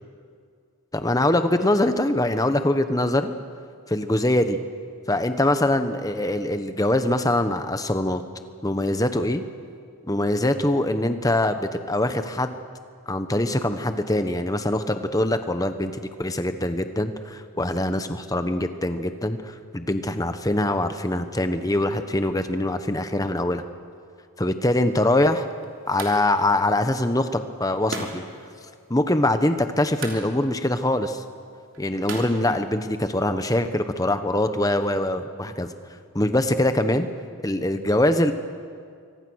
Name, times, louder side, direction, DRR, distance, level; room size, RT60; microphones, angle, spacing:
voice 1, 0.9-3.3 3.9-4.6 5.1-8.2 8.6-9.4 10.0-12.6 13.1-15.9 16.2-23.6 24.4-25.5 25.9-28.2 28.9-31.2 31.8-35.7 36.1-37.1 37.4-38.3, left 1 dB, 15° left, 9 dB, 1.0 m, -23 dB
sound 1, 24.8-33.3, right 3 dB, 60° right, 3.4 m, -41 dB
25.5 x 24.0 x 6.4 m, 2.2 s
head